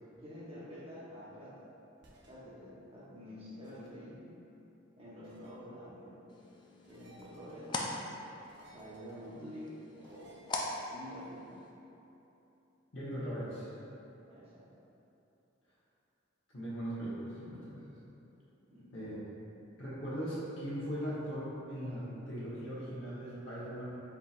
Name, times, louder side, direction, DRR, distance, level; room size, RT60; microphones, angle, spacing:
voice 1, 0.2-1.7 2.2-4.3 5.0-6.1 6.9-7.9 8.6-10.3 10.9-11.6 14.2-14.7 18.7-18.9, equal, 30° right, -8 dB, 1.0 m, -48 dB
sound 1, 2.0-2.3 3.6-3.9 5.2-5.5 6.8-7.7 8.4-9.3 10.0-11.3, equal, 60° right, 0.7 m, -60 dB
sound 2, 6.3-11.7, left 2 dB, 25° left, 0.3 m, -42 dB
voice 2, 12.9-13.8 16.5-17.8 18.9-19.2 19.8-23.8, equal, 75° left, -10 dB, 1.0 m, -39 dB
4.7 x 4.0 x 2.5 m, 3.0 s
head